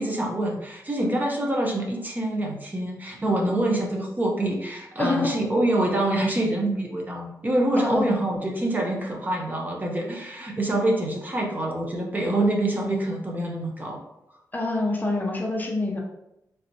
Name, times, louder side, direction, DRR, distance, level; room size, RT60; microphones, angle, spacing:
voice 1, 0.0-14.0, right 1 dB, 25° right, -1 dB, 0.6 m, -26 dB
voice 2, 5.0-5.3 7.8-8.1 14.5-16.0, left 2 dB, 25° left, 0 dB, 0.5 m, -26 dB
3.2 x 2.8 x 2.7 m, 0.86 s
wide cardioid pair, 135°, 7 cm